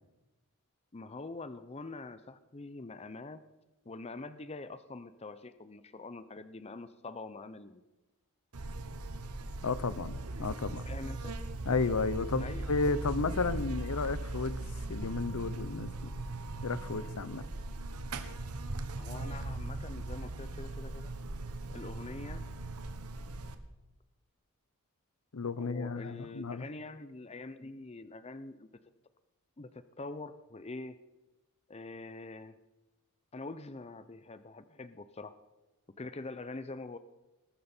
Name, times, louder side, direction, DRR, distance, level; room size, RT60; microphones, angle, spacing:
voice 1, 0.9-3.4 3.9-7.8 10.8-11.4 12.4-12.7 19.0-21.1 21.7-22.4 25.6-28.7 29.6-31.0 31.7-32.6 33.3-35.3 36.0-37.0, left 3 dB, 30° left, 13 dB, 0.6 m, -44 dB
Buzz, 8.5-23.5, right 2 dB, 90° right, 1.3 m, -39 dB
voice 2, 9.6-10.9 11.6-16.1 16.6-17.4 25.3-26.6, left 4 dB, 75° left, 16 dB, 0.7 m, -33 dB
20.5 x 12.5 x 4.4 m, 1.1 s
head